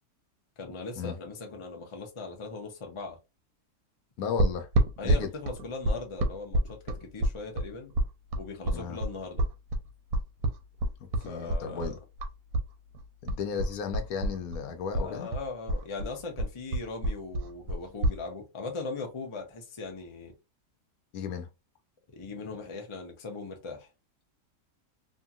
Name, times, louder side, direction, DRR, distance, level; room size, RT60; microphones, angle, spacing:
voice 1, 0.6-3.2 5.0-7.9 8.4-9.5 11.2-12.0 14.9-20.3 22.1-23.9, left 3 dB, 40° left, 0.4 m, -39 dB
voice 2, 4.2-4.7 5.0-5.3 8.7-9.0 11.2-12.0 13.2-15.3 21.1-21.5, left 6 dB, 75° left, 1.0 m, -34 dB
sound 1, 4.4-12.7 12.9-14.6 14.9-18.2, right 1 dB, 80° right, 1.1 m, -28 dB
2.8 x 2.6 x 2.4 m
omnidirectional pair, 1.6 m